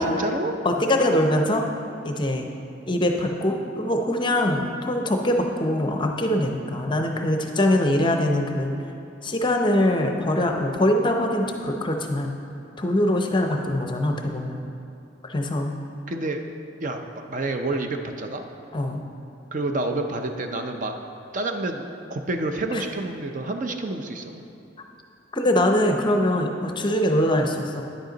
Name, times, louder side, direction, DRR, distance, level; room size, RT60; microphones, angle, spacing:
voice 1, 0.1-0.6 16.1-16.4 16.8-17.0 17.3-18.4 19.5-21.0 21.3-21.8 22.1-24.4, right 2 dB, 40° right, 5 dB, 0.5 m, -28 dB
voice 2, 0.6-1.6 2.0-2.5 2.9-8.7 9.2-12.3 12.8-14.6 15.2-15.7 18.7-19.0 22.7-22.8 25.3-27.8, left 1 dB, 25° left, 3 dB, 0.6 m, -23 dB
10.0 x 7.9 x 3.9 m, 2.7 s
head